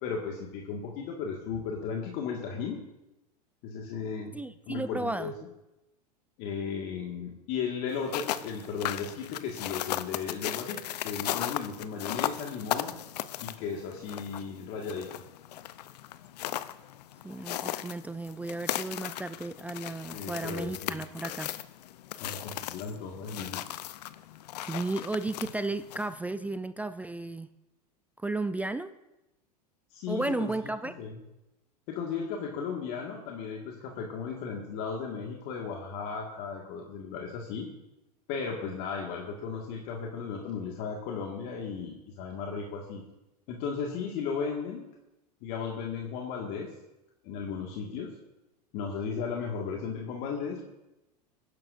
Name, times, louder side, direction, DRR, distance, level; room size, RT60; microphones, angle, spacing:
voice 1, 0.0-2.8 3.6-4.4 4.7-5.3 6.4-12.9 13.4-15.2 20.1-21.0 22.2-23.6 29.9-30.7 31.0-31.2 31.9-37.7 38.3-43.0 43.5-44.9 45.4-46.7 47.2-48.1 48.7-50.7, left 6 dB, 55° left, 0 dB, 1.8 m, -35 dB
voice 2, 4.3-5.3 17.2-21.5 24.6-27.5 28.2-28.9 30.1-30.9, right 2 dB, 5° right, 11 dB, 0.4 m, -34 dB
sound 1, 7.9-26.2, left 13 dB, 75° left, 0.6 m, -37 dB
20.5 x 10.5 x 2.6 m, 0.94 s
hypercardioid pair, 100°, 21 cm